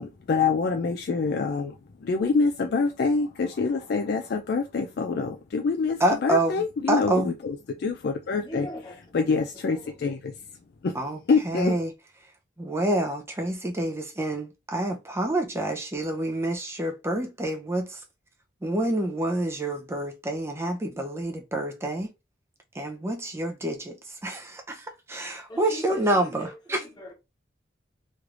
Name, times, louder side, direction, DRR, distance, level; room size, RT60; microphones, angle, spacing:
voice 1, 0.0-8.7 9.1-10.3 10.8-11.0 11.3-11.7, left 4 dB, 60° left, 0.4 m, -26 dB
voice 2, 6.0-7.3 10.9-11.9 12.2-12.3 12.6-18.0 18.6-22.1 22.7-26.8, right 1 dB, 15° right, 0.6 m, -28 dB
voice 3, 8.3-9.0 9.7-10.1 25.5-27.1, left 1 dB, 25° left, 1.1 m, -40 dB
3.1 x 3.1 x 2.5 m
head